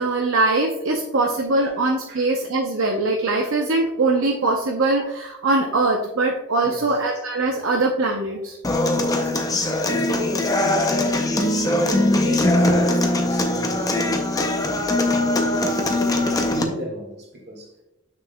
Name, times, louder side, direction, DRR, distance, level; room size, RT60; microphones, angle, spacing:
voice 1, 0.0-8.6, right 2 dB, 70° right, 0.6 m, -22 dB
voice 2, 6.6-7.0 8.9-14.4 14.7-17.7, equal, 50° right, 1.8 m, -34 dB
Human voice / Acoustic guitar, 8.6-16.6, left 1 dB, 15° left, 0.5 m, -21 dB
7.2 x 6.2 x 2.2 m
head